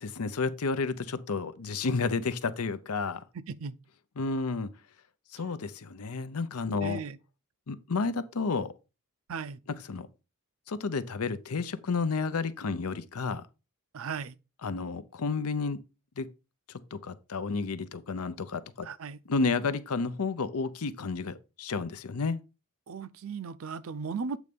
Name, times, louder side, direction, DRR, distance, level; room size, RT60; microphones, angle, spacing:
voice 1, 0.0-3.2 4.2-4.7 5.3-7.0 7.7-8.7 9.9-10.1 10.7-13.4 14.6-15.8 16.2-16.3 16.9-18.9 19.3-22.4, left 4 dB, 90° left, 0.7 m, -31 dB
voice 2, 3.3-3.8 6.8-7.2 9.3-9.6 13.9-14.4 18.8-19.2 22.9-24.4, right 5 dB, 65° right, 0.5 m, -36 dB
8.2 x 3.2 x 5.2 m
head